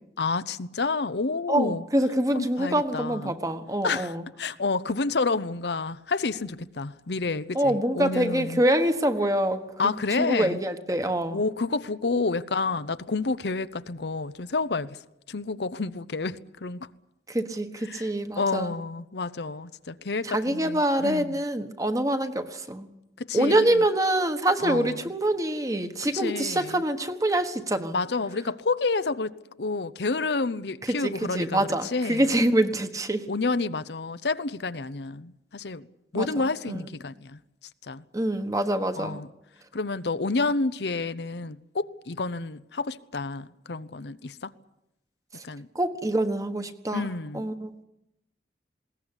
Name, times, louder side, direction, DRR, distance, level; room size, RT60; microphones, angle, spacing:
voice 1, 0.2-1.8 2.3-3.4 3.8-4.1 4.4-8.6 9.8-10.6 11.3-15.0 15.3-16.8 17.9-18.1 18.4-21.4 23.2-23.8 24.6-24.9 26.1-26.8 27.9-32.2 33.3-35.9 36.1-37.4 37.9-38.0 39.0-39.3 39.7-44.5 45.4-45.7 46.9-47.5, left 3 dB, 70° left, 0.8 m, -29 dB
voice 2, 1.5-4.2 7.5-9.6 10.1-11.4 17.3-18.7 20.2-22.9 23.3-28.0 30.8-33.3 36.1-36.9 38.1-39.2 45.3-45.4 45.7-47.1 47.3-47.8, right 1 dB, 20° right, 1.4 m, -25 dB
21.0 x 18.0 x 9.9 m
head